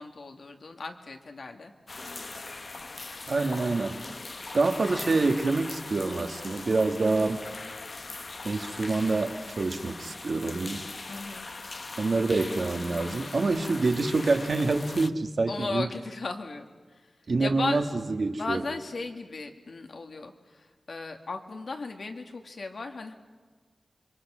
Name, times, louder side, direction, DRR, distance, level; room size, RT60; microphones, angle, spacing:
voice 1, 0.0-1.7 11.1-11.5 15.5-16.7 16.9-17.1 17.4-17.8 18.3-23.1, left 3 dB, 70° left, 5 dB, 2.0 m, -36 dB
sound 1, 1.9-15.1, left 3 dB, 50° left, 0.9 m, -40 dB
voice 2, 3.3-4.0 4.5-7.4 8.4-10.9 12.0-15.9 17.3-17.8 18.2-18.6, right 3 dB, 65° right, 6 dB, 1.8 m, -26 dB
27.5 x 23.5 x 6.3 m, 1.4 s
wide cardioid pair, 65°, 0 cm